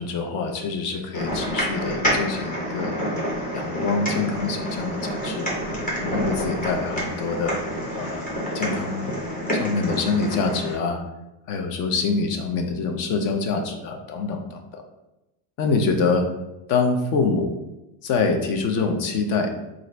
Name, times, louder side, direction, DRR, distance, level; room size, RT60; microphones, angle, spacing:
voice 1, 0.0-3.1 3.5-5.5 6.0-7.6 8.0-9.1 9.6-11.0 11.5-14.8 15.6-16.3 16.7-17.5 18.0-19.5, left 4 dB, 40° left, 4 dB, 0.5 m, -25 dB
sound 1, 1.1-10.7, equal, 15° left, 0.9 m, -28 dB
2.9 x 2.5 x 4.2 m, 0.95 s
cardioid pair, 160°, 48 cm